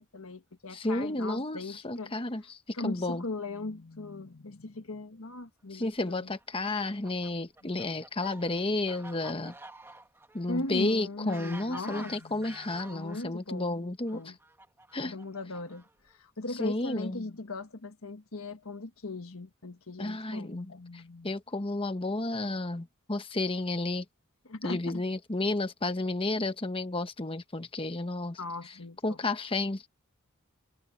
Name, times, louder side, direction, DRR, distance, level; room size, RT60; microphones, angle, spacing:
voice 1, 0.0-2.1 2.7-6.3 7.6-7.7 8.2-8.3 10.5-14.4 15.0-21.3 22.3-22.4 24.4-24.9 28.4-29.2, left 2 dB, 75° left, 1.5 m, -39 dB
voice 2, 0.7-3.2 5.7-9.5 10.3-14.2 14.9-15.1 16.6-17.2 20.0-24.0 24.6-28.4 29.0-29.9, left 2 dB, 25° left, 1.1 m, -32 dB
Fowl, 6.3-13.3 14.1-16.1, right 2 dB, 10° right, 1.2 m, -49 dB
head